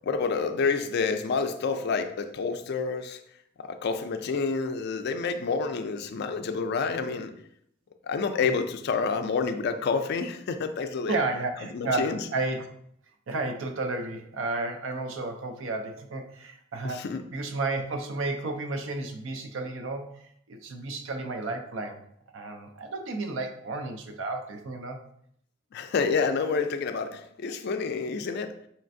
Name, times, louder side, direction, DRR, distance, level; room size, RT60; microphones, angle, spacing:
voice 1, 0.0-3.2 3.6-7.3 8.0-11.2 11.7-12.3 16.8-17.3 25.7-28.6, left 5 dB, 55° left, 8 dB, 0.4 m, -28 dB
voice 2, 11.1-12.7 13.3-17.0 17.3-22.0 22.3-25.0, right 3 dB, 75° right, 5 dB, 0.5 m, -32 dB
4.3 x 3.2 x 2.6 m, 0.71 s
head